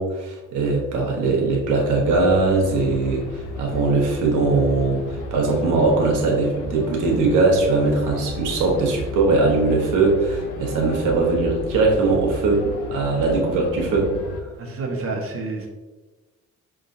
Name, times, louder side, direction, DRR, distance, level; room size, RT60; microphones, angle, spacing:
voice 1, 0.0-12.6 12.9-14.1, right 3 dB, 85° right, 0 dB, 1.2 m, -20 dB
sound 1, 2.0-14.4, left 1 dB, 85° left, 0.7 m, -34 dB
voice 2, 14.6-15.7, right 3 dB, 45° right, 1 dB, 1.1 m, -28 dB
5.2 x 3.5 x 2.6 m, 1.2 s
cardioid pair, 90°, 30 cm